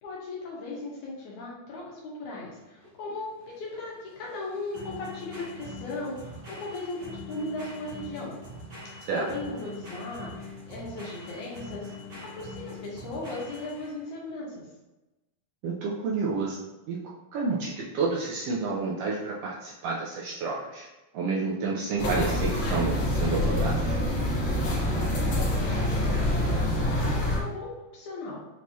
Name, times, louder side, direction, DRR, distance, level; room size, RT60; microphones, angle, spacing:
voice 1, 0.0-8.4 8.8-11.9 12.3-14.7 25.1-28.4, left 2 dB, 75° left, -4 dB, 2.4 m, -37 dB
sound 1, 2.5-14.1, left 2 dB, 50° right, 1.3 m, -43 dB
voice 2, 15.6-17.0 17.3-20.9 21.1-24.0, right 4 dB, 90° right, -4 dB, 1.3 m, -30 dB
sound 2, 22.0-27.4, left 1 dB, 60° left, 1.4 m, -26 dB
6.3 x 3.0 x 2.7 m, 1.0 s
omnidirectional pair, 3.6 m